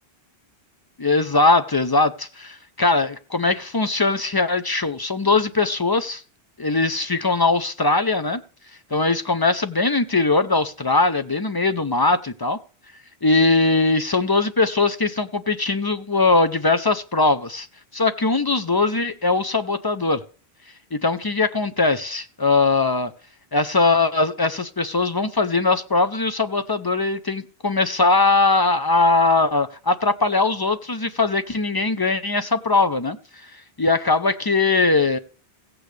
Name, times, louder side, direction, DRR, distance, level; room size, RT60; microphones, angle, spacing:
voice 1, 1.0-6.2 6.6-8.4 8.9-12.6 13.2-17.7 17.9-20.2 20.9-23.1 23.5-33.2 33.4-33.5 33.8-35.2, left 3 dB, 35° left, 10 dB, 0.4 m, -20 dB
16.5 x 8.3 x 3.3 m, 0.39 s
omnidirectional pair, 1.1 m